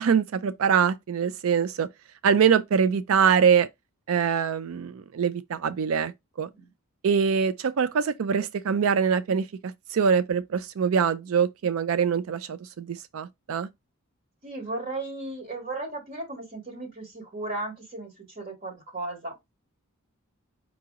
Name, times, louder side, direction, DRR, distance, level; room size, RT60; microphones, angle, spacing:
voice 1, 0.0-1.9 2.2-3.7 4.1-6.1 6.4-6.5 7.0-13.7, right 7 dB, 75° right, 0.4 m, -24 dB
voice 2, 14.4-19.4, right 2 dB, 40° right, 2.0 m, -35 dB
4.9 x 2.8 x 3.6 m
head